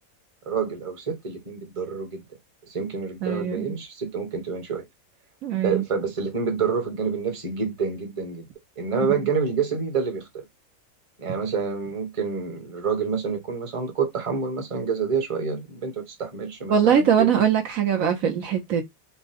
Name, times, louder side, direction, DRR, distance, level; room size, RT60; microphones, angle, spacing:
voice 1, 0.5-2.2 2.7-4.8 5.5-8.5 8.8-10.4 11.2-17.3, right 5 dB, 25° right, 1.0 m, -28 dB
voice 2, 3.2-3.6 5.4-5.8 16.7-18.8, right 8 dB, 70° right, 1.2 m, -21 dB
5.6 x 2.2 x 3.4 m
omnidirectional pair, 1.5 m